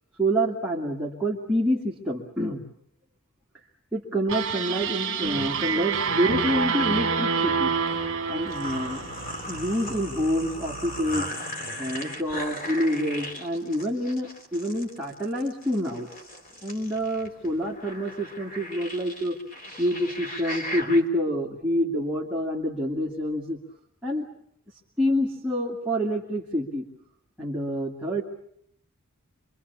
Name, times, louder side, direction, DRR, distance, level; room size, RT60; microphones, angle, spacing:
voice 1, 0.2-2.6 3.9-7.7 8.3-9.0 9.5-11.3 11.8-16.1 16.6-19.3 19.8-23.6 24.0-24.3 25.0-26.9 27.4-28.2, equal, 5° right, -4 dB, 2.3 m, -27 dB
sound 1, 4.3-9.6, right 6 dB, 55° right, 1.6 m, -27 dB
sound 2, 6.1-21.0, equal, 40° left, 3.2 m, -38 dB
26.5 x 24.0 x 7.0 m, 0.69 s
head